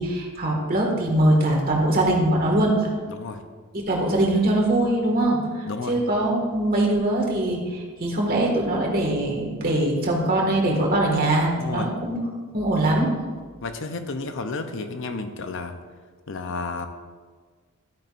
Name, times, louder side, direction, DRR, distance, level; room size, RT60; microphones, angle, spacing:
voice 1, 0.0-2.9 3.7-5.4 5.9-12.2 12.5-13.1, right 1 dB, 45° right, -1 dB, 1.9 m, -22 dB
voice 2, 3.1-3.4 5.7-6.0 11.6-11.9 13.6-15.8 16.3-16.9, left 3 dB, 60° left, 8 dB, 0.7 m, -31 dB
13.0 x 8.9 x 2.6 m, 1.5 s
head